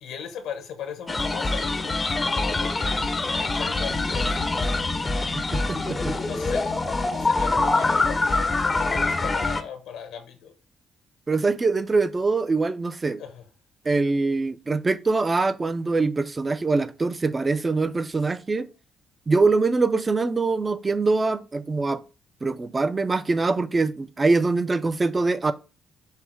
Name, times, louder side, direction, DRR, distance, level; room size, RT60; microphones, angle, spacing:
voice 1, 0.0-4.4 6.1-10.5 13.2-13.5, left 7 dB, 90° left, 1.1 m, -38 dB
sound 1, 1.1-9.6, left 3 dB, 25° left, 0.5 m, -24 dB
voice 2, 5.3-6.1 11.3-13.2 13.9-18.7 19.3-22.0 22.4-25.5, right 3 dB, 25° right, 0.4 m, -23 dB
5.7 x 2.1 x 4.4 m
cardioid pair, 90°, 0 cm